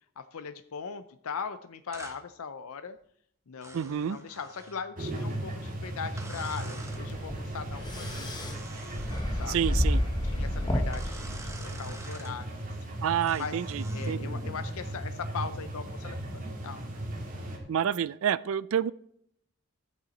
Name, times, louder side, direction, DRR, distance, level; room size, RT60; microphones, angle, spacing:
voice 1, 0.2-3.0 3.5-8.4 9.3-9.8 10.2-12.7 13.4-13.6 13.9-16.9, left 5 dB, 75° left, 10 dB, 0.6 m, -40 dB
sound 1, 1.9-2.2 3.6-4.8 6.2-7.0 7.9-9.3 10.9-12.3 13.3-14.2, right 2 dB, 15° right, 1.1 m, -47 dB
voice 2, 3.7-4.2 9.5-10.0 13.0-14.3 17.7-18.9, right 9 dB, 65° right, 17 dB, 0.3 m, -29 dB
sound 2, 5.0-17.6, right 1 dB, 35° right, 2.4 m, -37 dB
sound 3, 6.8-12.0, left 1 dB, 20° left, 1.0 m, -31 dB
12.0 x 8.6 x 4.2 m, 0.68 s
head